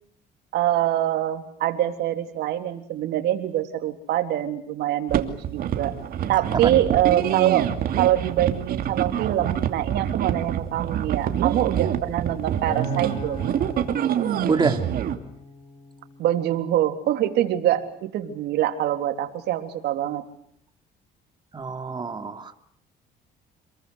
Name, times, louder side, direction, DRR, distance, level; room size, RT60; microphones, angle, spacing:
voice 1, 0.5-5.9 6.3-13.5 16.2-20.2, right 12 dB, 75° right, 6 dB, 3.5 m, -24 dB
sound 1, 5.1-15.2, right 9 dB, 60° right, 2.7 m, -26 dB
Acoustic guitar, 12.7-17.0 17.6-17.9, left 2 dB, 35° left, 6.0 m, -41 dB
voice 2, 14.5-14.8 21.5-22.6, right 4 dB, 25° right, 7 dB, 2.9 m, -26 dB
28.0 x 22.0 x 8.2 m, 0.67 s
cardioid pair, 110°, 17 cm